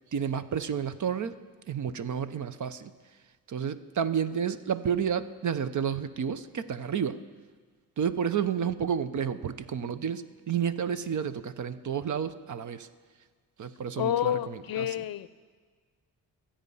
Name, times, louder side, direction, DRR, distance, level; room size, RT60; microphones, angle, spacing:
voice 1, 0.1-1.4 1.7-2.9 3.5-7.2 8.0-12.9 13.6-15.0, right 7 dB, 45° right, 13 dB, 0.8 m, -31 dB
voice 2, 14.0-15.3, left 11 dB, 60° left, 16 dB, 0.6 m, -29 dB
26.0 x 8.8 x 5.5 m, 1.5 s
cardioid pair, 95°, 40 cm